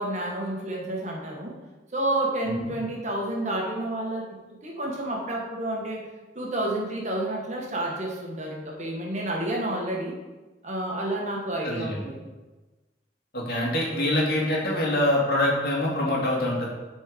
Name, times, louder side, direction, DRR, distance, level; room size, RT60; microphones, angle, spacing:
voice 1, 0.0-1.5 1.9-6.0 6.3-10.1 10.6-12.2, right 1 dB, 40° right, -1 dB, 1.5 m, -30 dB
voice 2, 11.6-12.0 13.3-16.7, left 1 dB, 55° left, -3 dB, 2.3 m, -25 dB
10.5 x 4.4 x 5.0 m, 1.2 s
head